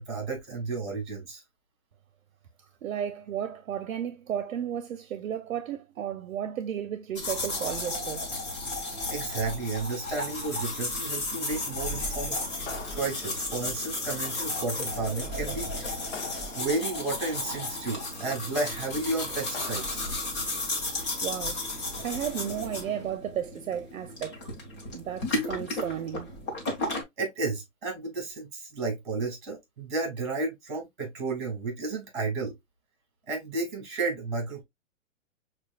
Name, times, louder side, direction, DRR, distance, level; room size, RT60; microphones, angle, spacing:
voice 1, 0.0-1.4 9.1-12.4 12.9-15.9 16.6-20.1 27.2-32.5 33.3-34.6, right 3 dB, 35° right, 2.3 m, -32 dB
voice 2, 2.8-8.4 21.2-21.6 22.0-24.4 24.9-26.3, right 9 dB, 80° right, 0.7 m, -33 dB
sound 1, 7.2-27.0, left 2 dB, 25° left, 0.9 m, -34 dB
Hammer, 11.5-23.2, right 1 dB, 5° left, 1.3 m, -50 dB
sound 2, 12.7-13.7 16.1-17.1 19.5-20.4, left 5 dB, 65° left, 1.0 m, -44 dB
5.9 x 2.3 x 2.3 m
hypercardioid pair, 175°, 40 cm